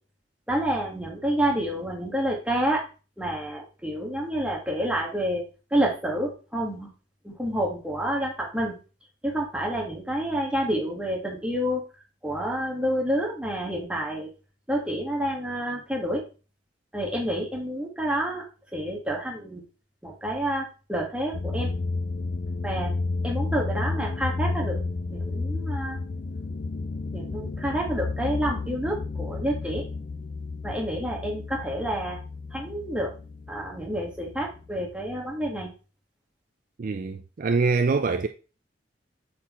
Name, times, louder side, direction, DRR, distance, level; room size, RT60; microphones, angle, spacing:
voice 1, 0.5-2.8 3.2-6.9 7.2-8.7 9.2-11.8 12.2-14.3 14.7-16.3 16.9-18.5 18.7-19.6 20.0-21.7 22.6-22.9 23.2-24.8 25.1-26.0 27.1-29.9 30.6-32.2 32.5-33.1 33.5-35.7, right 1 dB, 5° right, 1.5 m, -28 dB
sound 1, 21.3-34.9, left 3 dB, 45° left, 0.4 m, -32 dB
voice 2, 36.8-38.3, right 4 dB, 45° right, 0.4 m, -24 dB
8.1 x 4.2 x 3.0 m
head